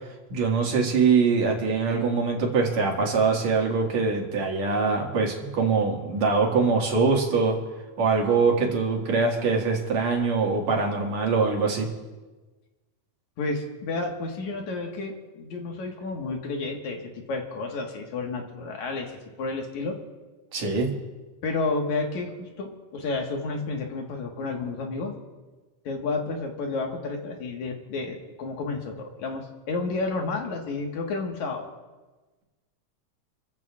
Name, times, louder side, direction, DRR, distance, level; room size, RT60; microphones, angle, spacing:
voice 1, 0.3-7.6 8.0-11.9 20.5-20.9, right 4 dB, 60° right, 0 dB, 3.0 m, -23 dB
voice 2, 13.4-17.0 17.3-20.0 21.4-25.1 25.8-31.7, left 3 dB, 70° left, 1 dB, 2.7 m, -31 dB
28.0 x 15.0 x 2.4 m, 1.2 s
omnidirectional pair, 3.6 m